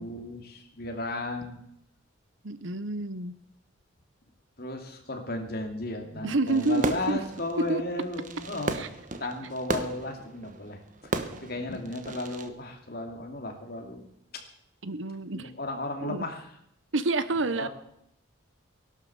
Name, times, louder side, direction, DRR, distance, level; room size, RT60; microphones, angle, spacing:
voice 1, 0.0-1.6 4.6-8.8 9.2-11.1 11.4-14.1 15.3-16.5 17.5-17.7, left 2 dB, 50° left, 3 dB, 2.7 m, -35 dB
voice 2, 2.4-3.4 6.1-7.2 7.7-7.8 8.7-8.9 14.8-15.5 16.0-16.3 16.9-17.7, right 2 dB, 75° right, 14 dB, 1.0 m, -28 dB
Fireworks, 6.5-12.5, right 2 dB, 40° right, 1.1 m, -36 dB
17.0 x 11.5 x 7.1 m, 0.74 s
head